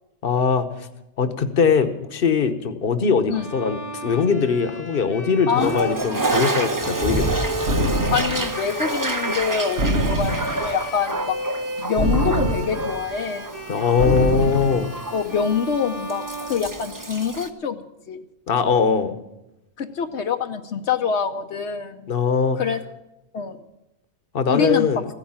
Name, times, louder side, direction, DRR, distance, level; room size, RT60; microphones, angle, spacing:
voice 1, 0.2-0.9 1.2-7.4 13.7-14.9 18.5-19.2 22.1-22.6 24.3-25.0, left 5 dB, 55° left, 10 dB, 1.2 m, -21 dB
Bowed string instrument, 3.3-17.4, right 1 dB, 50° right, 2.5 m, -35 dB
voice 2, 5.5-6.2 8.1-11.4 11.8-13.5 15.1-18.2 19.8-22.1 22.6-22.8 23.3-23.6 24.5-24.9, left 6 dB, 80° left, 6 dB, 1.2 m, -25 dB
Toilet flush, 5.5-17.5, right 2 dB, 20° right, 0.8 m, -29 dB
sound 1, 7.7-8.5 9.8-10.7 12.0-13.0 14.0-14.8, right 1 dB, 80° right, 1.8 m, -23 dB
15.0 x 10.5 x 8.7 m, 0.91 s
omnidirectional pair, 1.1 m